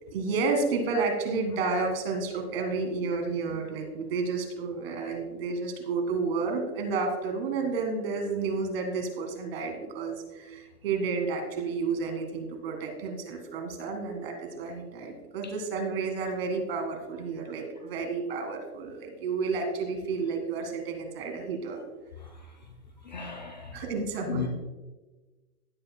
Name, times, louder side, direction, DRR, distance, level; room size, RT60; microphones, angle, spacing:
voice 1, 0.1-21.8 23.7-24.5, right 4 dB, 40° right, 1.8 m, -31 dB
voice 2, 23.1-23.7 24.3-24.5, left 7 dB, 30° left, 0.5 m, -34 dB
16.5 x 7.9 x 2.2 m
hypercardioid pair, 175°, 46 cm